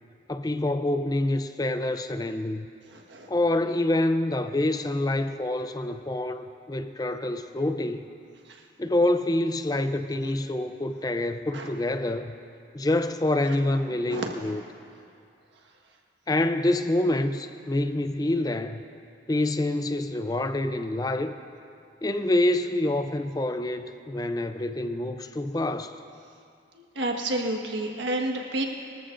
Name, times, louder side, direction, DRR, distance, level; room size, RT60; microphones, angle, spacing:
voice 1, 0.3-2.7 3.3-8.1 8.8-12.3 12.7-14.6 16.3-18.8 19.3-21.3 22.0-25.9, left 1 dB, 20° left, 9 dB, 0.4 m, -26 dB
voice 2, 2.9-3.3 11.5-11.7 14.1-14.3 26.9-28.7, right 1 dB, 80° right, 2 dB, 1.5 m, -29 dB
24.0 x 14.0 x 2.6 m, 2.5 s
head